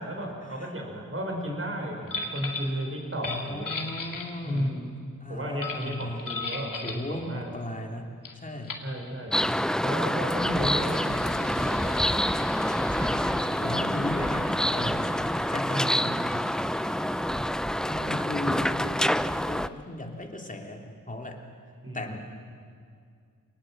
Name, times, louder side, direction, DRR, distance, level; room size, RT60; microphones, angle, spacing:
voice 1, 0.0-3.7 4.4-4.8 5.3-7.5 8.8-9.3 9.8-12.2 15.7-16.2 21.8-22.2, equal, 40° right, 1 dB, 5.6 m, -33 dB
sound 1, 2.1-2.7 3.1-4.7 5.6-7.1 8.2-8.3 8.6-8.9 10.0-19.2, left 3 dB, 80° left, 2.4 m, -40 dB
voice 2, 3.3-4.9 5.2-6.3 6.8-8.8 12.9-15.1 15.5-16.1 17.8-21.4 21.9-22.2, left 1 dB, 25° left, 2 dB, 2.9 m, -36 dB
sound 2, 9.3-19.7, equal, ahead, 0.5 m, -27 dB
26.5 x 19.0 x 7.6 m, 2.2 s
wide cardioid pair, 75°, 32 cm